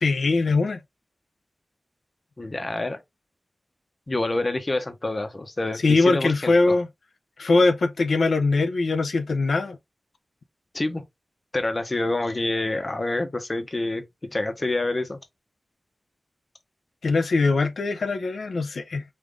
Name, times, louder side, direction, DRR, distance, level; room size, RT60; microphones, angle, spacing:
voice 1, 0.0-0.8 5.8-6.9 7.4-9.8 17.0-19.0, left 3 dB, 80° left, 0.5 m, -21 dB
voice 2, 2.4-3.0 4.1-6.8 10.7-11.0 11.5-15.2, left 2 dB, 35° left, 0.9 m, -27 dB
5.3 x 2.5 x 3.5 m
wide cardioid pair, 110°, 0 cm